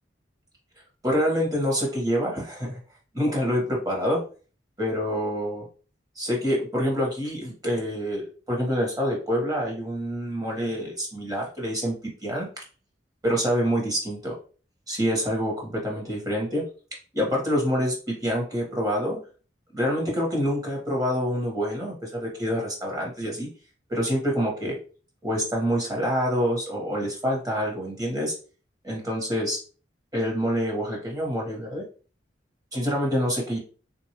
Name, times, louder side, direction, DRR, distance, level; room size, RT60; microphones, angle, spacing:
voice 1, 1.0-2.8 3.1-4.2 4.8-5.7 6.2-11.9 12.2-12.6 13.2-14.4 14.9-16.6 17.1-19.2 19.7-23.5 23.9-24.8 25.2-28.3 28.8-29.6 30.1-31.8 32.7-33.6, equal, 20° right, -1 dB, 1.3 m, -26 dB
3.7 x 2.6 x 3.0 m, 0.38 s
head